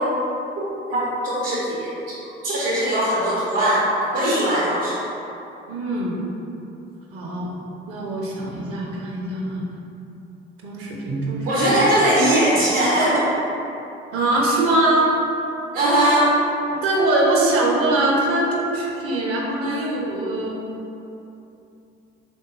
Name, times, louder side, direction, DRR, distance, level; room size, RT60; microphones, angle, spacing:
voice 1, 1.2-1.9 2.4-3.8 4.1-5.0 11.4-13.3 15.7-16.3, right 1 dB, 75° right, -8 dB, 1.4 m, -19 dB
voice 2, 5.7-6.2 7.1-7.5 7.9-9.7 10.6-11.8 14.1-15.1 16.7-20.6, right 2 dB, 50° right, -2 dB, 0.8 m, -22 dB
3.7 x 3.6 x 2.7 m, 2.9 s
figure-of-eight pair, 50°, 29 cm